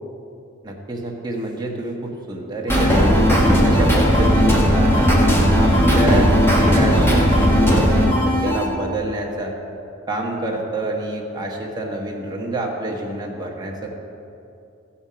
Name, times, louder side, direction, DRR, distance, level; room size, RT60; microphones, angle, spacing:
voice 1, 0.6-5.1 5.6-7.1 7.4-9.5 10.1-14.0, right 1 dB, 20° right, -1 dB, 1.3 m, -27 dB
sound 1, 2.7-8.6, equal, 10° left, 1.4 m, -16 dB
15.0 x 5.6 x 5.7 m, 2.7 s
head